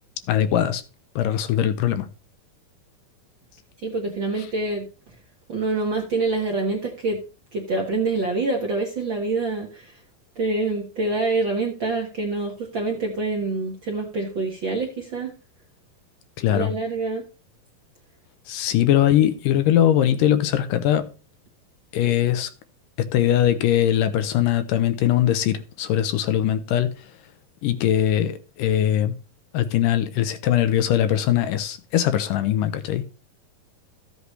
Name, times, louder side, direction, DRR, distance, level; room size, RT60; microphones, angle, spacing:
voice 1, 0.3-0.8 1.2-2.1 16.4-16.7 18.5-21.1 21.9-22.5 23.0-26.9 27.6-29.1 29.5-33.0, left 11 dB, 75° left, 2.2 m, -21 dB
voice 2, 3.8-4.8 5.5-7.2 7.5-10.0 10.3-15.3 16.5-17.2, right 3 dB, 55° right, 1.4 m, -26 dB
14.0 x 8.2 x 3.2 m
omnidirectional pair, 4.1 m